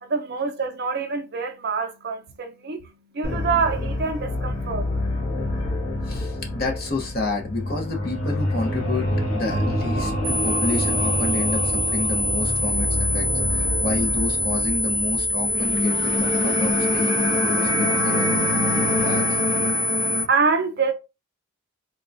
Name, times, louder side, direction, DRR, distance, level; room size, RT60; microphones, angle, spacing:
voice 1, 0.0-4.8 19.6-20.9, right 5 dB, 50° right, 0.5 m, -26 dB
sound 1, 3.2-20.2, left 1 dB, 75° left, 1.7 m, -26 dB
voice 2, 6.0-18.4 18.7-19.4, left 3 dB, 45° left, 0.9 m, -30 dB
sound 2, 10.2-20.2, left 1 dB, ahead, 1.1 m, -25 dB
3.7 x 2.3 x 2.6 m
head